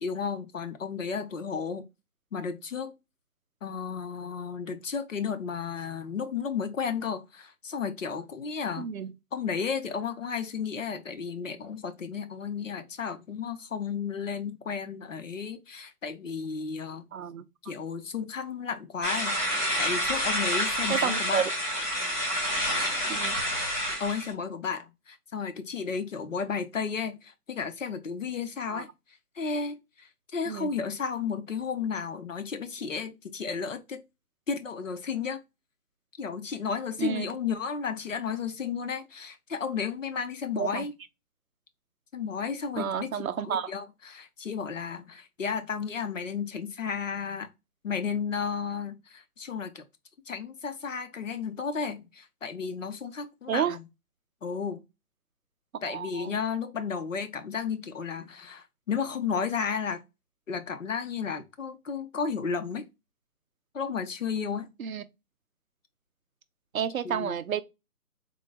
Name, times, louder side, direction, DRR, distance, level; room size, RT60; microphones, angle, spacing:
voice 1, 0.0-1.9 2.3-2.9 3.6-8.9 9.3-17.1 17.6-19.4 19.8-21.4 24.0-28.9 29.4-34.0 34.5-35.4 36.2-40.9 42.1-47.5 47.8-49.8 50.3-53.9 54.4-54.8 55.8-60.0 60.5-62.9 63.7-64.7 67.0-67.4, left 6 dB, 55° left, 0.6 m, -33 dB
voice 2, 8.8-9.1 17.1-17.4 20.9-21.5 23.1-23.4 28.7-28.8 30.5-30.7 37.0-37.3 40.6-40.9 42.8-43.7 53.5-53.8 55.8-56.3 64.8-65.0 66.7-67.6, right 8 dB, 65° right, 0.5 m, -30 dB
sound 1, 19.0-24.3, equal, 30° left, 1.4 m, -28 dB
3.8 x 2.1 x 3.2 m
hypercardioid pair, 175°, 46 cm